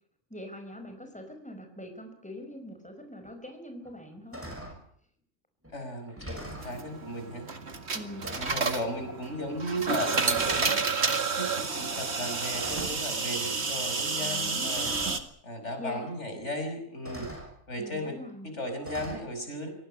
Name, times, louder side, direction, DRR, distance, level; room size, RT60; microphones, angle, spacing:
voice 1, 0.3-4.4 7.9-8.2 14.2-15.2 15.8-16.1 17.8-18.5, equal, 5° left, 6 dB, 5.3 m, -43 dB
sound 1, 3.2-3.3 3.8-4.0 4.3-4.8 5.6-5.7 6.1-6.7 7.7-7.9 8.2-8.7 9.6-9.9 10.2-10.7 12.5-13.1 14.2-14.3 14.7-15.2 16.4-16.5 17.0-17.5 18.8-19.2, equal, 10° right, 6.8 m, -41 dB
voice 2, 5.7-7.5 8.4-10.8 11.4-14.9 15.4-17.3 17.7-18.2 18.4-19.7, equal, 70° left, 6 dB, 6.1 m, -36 dB
sound 2, 6.5-15.2, right 4 dB, 65° right, 2.2 m, -30 dB
25.5 x 18.0 x 8.6 m, 0.64 s
omnidirectional pair, 1.2 m